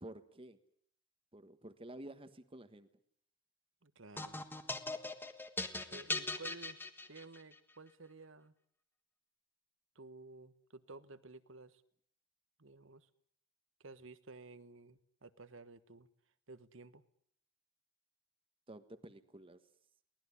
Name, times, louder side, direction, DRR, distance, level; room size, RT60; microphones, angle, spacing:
voice 1, 0.0-0.6 1.3-2.9 18.7-19.6, right 1 dB, 25° right, 9 dB, 1.4 m, -51 dB
voice 2, 3.8-4.4 5.7-6.8 7.1-8.5 9.9-11.8 12.6-13.1 13.8-16.1 16.5-17.0, right 3 dB, 65° right, 13 dB, 1.4 m, -54 dB
sound 1, 4.2-7.5, left 2 dB, 10° left, 1.5 m, -40 dB
23.5 x 19.0 x 9.9 m, 0.69 s
head